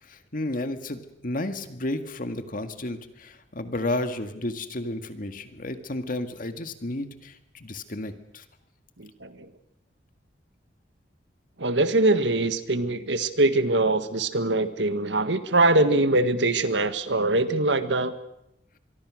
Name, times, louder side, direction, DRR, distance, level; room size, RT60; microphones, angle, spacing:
voice 1, 0.0-8.4, left 1 dB, 50° left, 8 dB, 1.9 m, -32 dB
voice 2, 9.0-9.5 11.6-18.1, right 2 dB, 85° right, 11 dB, 1.6 m, -23 dB
25.5 x 23.0 x 6.4 m, 0.82 s
head